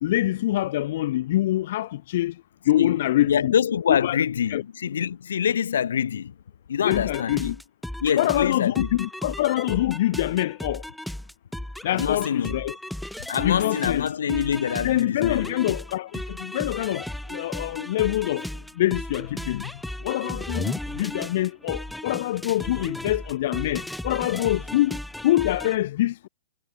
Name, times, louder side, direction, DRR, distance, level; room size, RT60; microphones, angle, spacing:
voice 1, 0.0-2.3 2.6-3.5 3.9-4.2 4.5-4.6 6.8-7.6 8.2-10.8 11.8-12.7 13.4-14.1 14.8-18.5 18.8-19.7 20.0-25.0 25.2-26.3, left 15 dB, 40° left, 1.5 m, -25 dB
voice 2, 2.7-6.4 6.7-7.6 8.0-8.9 11.9-12.6 13.3-15.6, left 8 dB, 70° left, 3.2 m, -25 dB
sound 1, 6.9-25.8, left 1 dB, ahead, 4.1 m, -35 dB
hypercardioid pair, 180°, 0 cm